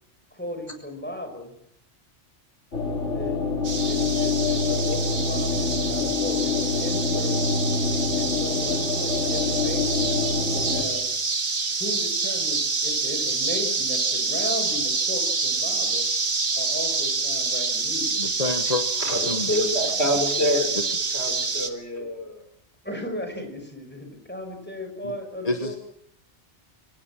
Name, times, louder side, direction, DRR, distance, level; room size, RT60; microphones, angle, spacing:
voice 1, 0.3-1.5 3.1-3.5 3.8-7.3 8.1-11.1 11.8-16.1 16.5-18.3 22.8-25.8, left 1 dB, 10° left, 4 dB, 5.8 m, -35 dB
sound 1, 2.7-10.8, left 4 dB, 90° left, 3.1 m, -26 dB
sound 2, 3.6-21.7, right 4 dB, 75° right, 2.2 m, -27 dB
voice 2, 18.2-19.5 20.8-20.9 25.0-25.2 25.4-25.8, left 2 dB, 35° left, 7 dB, 1.4 m, -29 dB
voice 3, 19.0-20.7 21.1-22.4, left 1 dB, 65° left, 5 dB, 5.5 m, -27 dB
25.5 x 17.5 x 7.6 m, 0.74 s
omnidirectional pair, 1.2 m